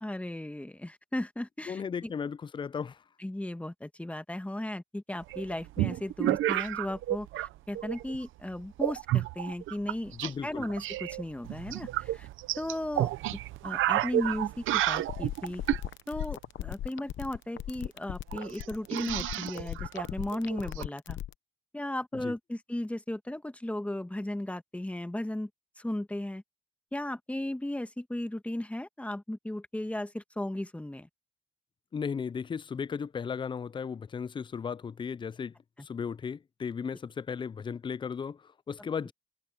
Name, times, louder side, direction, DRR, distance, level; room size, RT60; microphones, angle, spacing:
voice 1, 0.0-2.1 3.2-10.1 10.4-12.3 12.6-15.6 16.1-21.2 21.7-25.5 25.8-26.4 26.9-31.1, left 1 dB, 5° left, 1.5 m, -36 dB
voice 2, 1.7-3.0 10.1-10.7 22.2-22.3 31.9-39.1, left 6 dB, 25° left, 0.4 m, -36 dB
sound 1, 5.3-7.5 7.8-8.2 8.8-10.3 10.6-15.9 17.6-17.7 17.9-18.0 18.3-20.8, right 14 dB, 85° right, 0.8 m, -31 dB
sound 2, 15.1-21.3, left 12 dB, 70° left, 0.8 m, -38 dB
cardioid pair, 90°, 20 cm